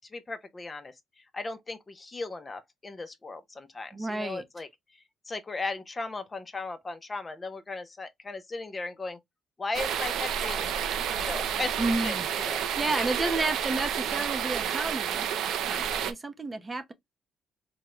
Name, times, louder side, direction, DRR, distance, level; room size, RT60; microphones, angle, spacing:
voice 1, 0.1-4.7 4.9-9.2 9.6-10.7 11.1-11.8 12.0-12.2 12.5-12.6 13.0-13.3, left 3 dB, 25° left, 0.5 m, -37 dB
voice 2, 3.9-4.4 11.8-12.3 12.8-15.3 15.6-16.9, right 2 dB, 25° right, 0.6 m, -31 dB
sound 1, 9.7-16.1, right 8 dB, 80° right, 0.4 m, -30 dB
3.5 x 2.1 x 2.9 m
cardioid pair, 90°, 0 cm